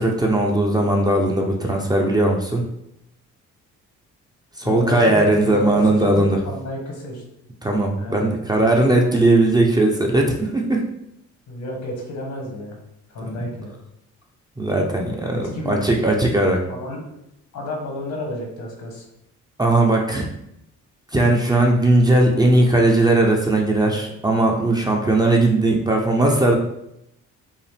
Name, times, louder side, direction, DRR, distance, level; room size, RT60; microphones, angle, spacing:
voice 1, 0.0-2.6 4.6-6.4 7.6-10.8 13.2-13.5 14.6-16.6 19.6-20.3 21.1-26.6, right 2 dB, 15° right, 0 dB, 0.7 m, -18 dB
voice 2, 4.6-5.8 6.1-7.2 8.0-8.3 11.5-12.8 13.1-13.7 15.5-15.8 16.7-17.0 17.5-19.0, left 1 dB, 70° left, 0 dB, 1.5 m, -31 dB
5.4 x 2.1 x 3.4 m, 0.80 s
cardioid pair, 90°, 30 cm